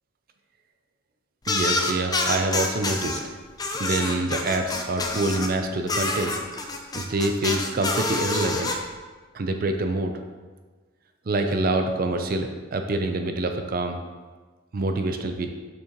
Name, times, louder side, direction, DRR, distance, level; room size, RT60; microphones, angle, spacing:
sound 1, 1.4-3.2 3.6-5.5 5.9-8.7, left 3 dB, 20° left, 0.5 m, -27 dB
voice 1, 1.5-3.2 3.7-6.4 6.9-8.7 9.3-10.1 11.3-14.0 14.7-15.5, right 2 dB, 45° right, 6 dB, 0.4 m, -26 dB
6.4 x 6.2 x 3.0 m, 1.4 s
head